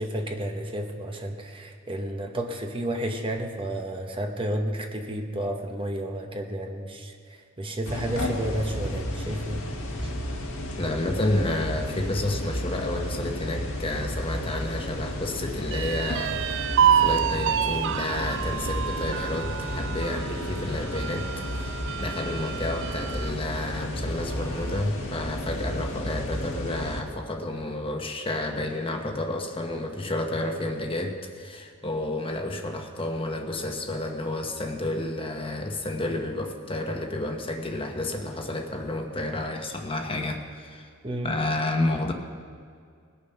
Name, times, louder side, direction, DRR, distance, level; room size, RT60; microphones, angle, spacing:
voice 1, 0.0-7.1 7.6-9.6 10.0-10.1 41.0-41.4, right 1 dB, 25° right, 3 dB, 0.9 m, -31 dB
sound 1, 7.9-27.0, left 1 dB, 75° left, 1.9 m, -32 dB
voice 2, 10.8-40.9 41.2-42.1, left 1 dB, 25° left, 3 dB, 1.1 m, -30 dB
sound 2, 15.7-23.4 23.8-23.9 24.3-25.0, right 9 dB, 60° right, 0.3 m, -28 dB
20.5 x 6.9 x 5.7 m, 2.1 s
head